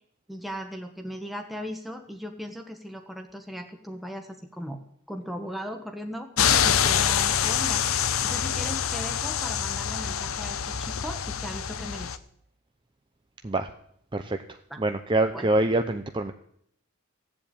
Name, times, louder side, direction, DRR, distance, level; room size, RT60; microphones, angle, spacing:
voice 1, 0.3-4.8 5.1-12.2 14.7-14.8 15.3-15.5, equal, ahead, 4 dB, 1.1 m, -38 dB
sound 1, 6.4-12.2, left 8 dB, 65° left, 0.8 m, -26 dB
voice 2, 14.1-16.3, right 2 dB, 25° right, 7 dB, 0.6 m, -26 dB
16.0 x 7.8 x 8.8 m, 0.70 s
head